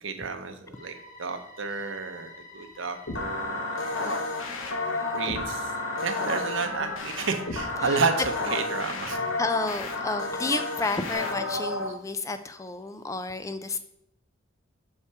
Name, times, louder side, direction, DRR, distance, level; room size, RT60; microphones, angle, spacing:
voice 1, 0.0-3.8 5.1-5.7 6.0-9.2, right 4 dB, 65° right, 7 dB, 0.7 m, -31 dB
sound 1, 0.7-11.1, left 2 dB, 40° left, 2.1 m, -48 dB
sound 2, 3.1-11.9, left 2 dB, 80° left, 1.1 m, -31 dB
voice 2, 3.9-4.3 7.7-8.0 9.4-13.8, left 3 dB, 15° left, 10 dB, 0.4 m, -31 dB
6.4 x 5.6 x 4.6 m, 0.78 s
head